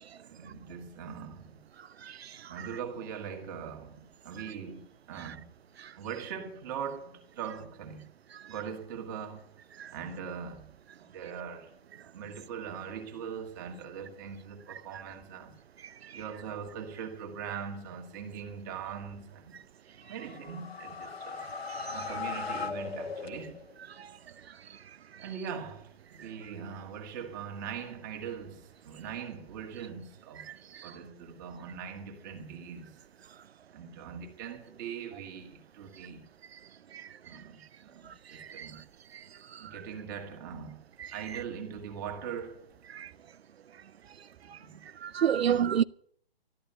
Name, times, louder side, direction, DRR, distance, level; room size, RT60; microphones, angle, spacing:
voice 1, 0.2-1.5 2.5-5.5 6.0-8.0 8.5-9.5 9.9-10.7 11.0-11.7 12.0-15.6 16.1-19.6 20.1-21.4 21.9-23.6 25.2-30.5 30.8-33.0 33.7-36.2 37.2-38.8 39.6-40.8 41.1-42.7 44.4-44.8 45.4-45.7, right 7 dB, 20° right, 1.9 m, -41 dB
sound 1, 20.0-23.8, left 5 dB, 85° left, 1.8 m, -38 dB
voice 2, 38.4-38.7 39.5-39.8 42.9-43.1 45.0-45.8, right 9 dB, 85° right, 0.6 m, -29 dB
13.5 x 11.0 x 6.8 m
hypercardioid pair, 170°, 30 cm